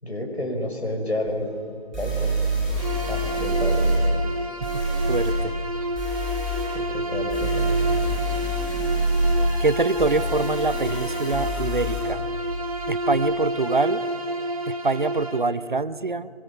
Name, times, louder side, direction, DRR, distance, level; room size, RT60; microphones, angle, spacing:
voice 1, 0.0-1.4 2.0-2.4 3.1-3.9 6.7-7.8, left 1 dB, 85° left, 3 dB, 6.3 m, -30 dB
sound 1, 1.3-1.4 1.9-4.0 4.6-5.3 5.9-6.7 7.3-12.0, right 2 dB, ahead, 5.1 m, -26 dB
Bowed string instrument, 2.8-15.5, equal, 35° right, 2.1 m, -29 dB
voice 2, 5.1-5.5 9.6-12.3 12.9-14.0 14.7-16.3, right 3 dB, 50° right, 15 dB, 0.8 m, -25 dB
26.5 x 24.0 x 5.8 m, 2.3 s
figure-of-eight pair, 165°, 32 cm